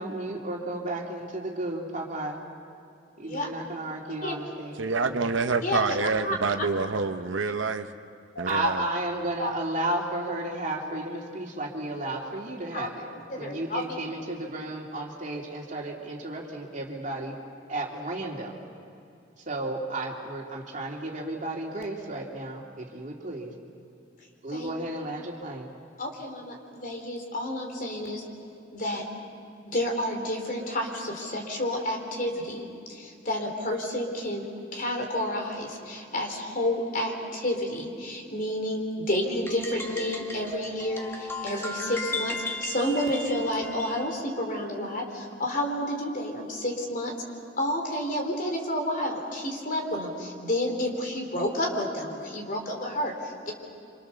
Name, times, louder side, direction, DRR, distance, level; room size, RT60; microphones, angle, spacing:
voice 1, 0.0-2.4 3.2-5.3 8.4-13.1 13.4-17.4 17.7-18.6 19.5-23.5 24.4-25.7, right 2 dB, 40° right, 2.9 m, -33 dB
voice 2, 3.2-3.5 4.2-4.3 5.6-6.0 6.2-6.3 8.3-8.4 9.4-9.5 12.7-12.9 13.3-13.9 24.5-24.7 26.0-28.2 28.7-29.1 29.7-34.4 34.7-47.1 47.6-53.5, left 1 dB, 45° left, 3.8 m, -30 dB
voice 3, 4.8-7.8 8.4-8.8, right 4 dB, 85° right, 0.9 m, -27 dB
sound 1, 39.3-44.1, left 2 dB, 15° left, 1.9 m, -36 dB
27.5 x 26.0 x 7.0 m
head